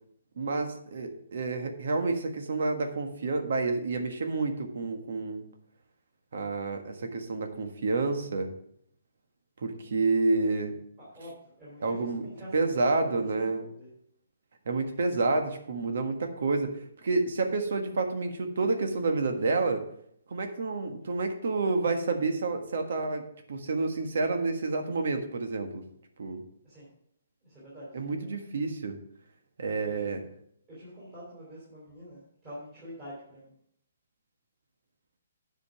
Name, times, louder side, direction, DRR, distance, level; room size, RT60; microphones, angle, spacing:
voice 1, 0.4-5.4 6.3-8.5 9.6-10.8 11.8-12.3 12.5-13.6 14.6-19.8 20.3-23.2 23.5-25.8 26.2-26.4 27.9-29.0 29.6-30.2, right 3 dB, 60° right, 5 dB, 1.5 m, -29 dB
voice 2, 11.0-13.9 26.6-26.9 27.4-28.3 29.6-30.2 30.7-33.5, equal, 20° right, -9 dB, 3.8 m, -46 dB
9.8 x 5.3 x 5.9 m, 0.68 s
hypercardioid pair, 170°, 0 cm